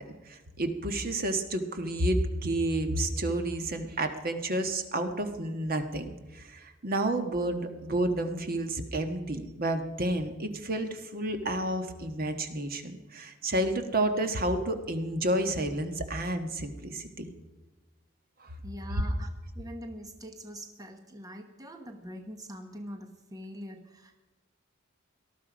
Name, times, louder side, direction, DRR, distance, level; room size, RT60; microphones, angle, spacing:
voice 1, 0.2-17.2 18.4-18.5, right 1 dB, 50° right, 7 dB, 1.4 m, -30 dB
voice 2, 18.6-19.3 19.5-24.2, equal, 20° right, 5 dB, 1.1 m, -43 dB
19.0 x 13.0 x 5.1 m, 1.1 s
head